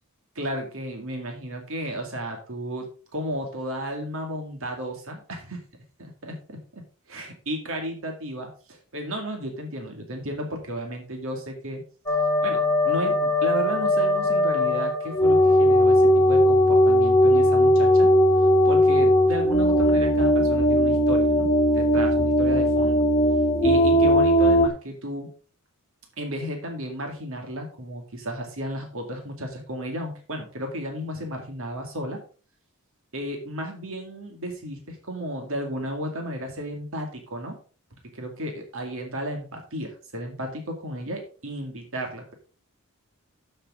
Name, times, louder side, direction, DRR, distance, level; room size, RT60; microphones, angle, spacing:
voice 1, 0.4-5.6 6.0-6.8 7.1-11.8 12.4-12.6 12.8-18.1 18.6-23.1 23.6-25.3 26.2-32.2 33.1-37.5 38.1-42.3, equal, 65° right, 3 dB, 2.2 m, -33 dB
sound 1, 12.1-24.7, equal, 20° left, 1.6 m, -19 dB
12.5 x 6.5 x 3.7 m, 0.38 s
head